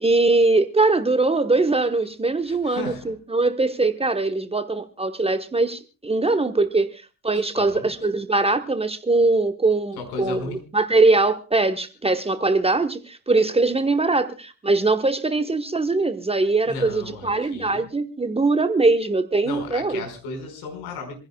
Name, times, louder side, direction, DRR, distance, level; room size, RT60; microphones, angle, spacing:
voice 1, 0.0-10.4 10.7-20.0, right 3 dB, 15° right, 9 dB, 1.1 m, -21 dB
voice 2, 2.4-3.1 7.5-7.9 10.0-10.6 16.7-17.9 19.4-21.1, left 3 dB, 60° left, 4 dB, 5.1 m, -34 dB
26.5 x 16.0 x 2.3 m, 0.32 s
figure-of-eight pair, 55°, 44 cm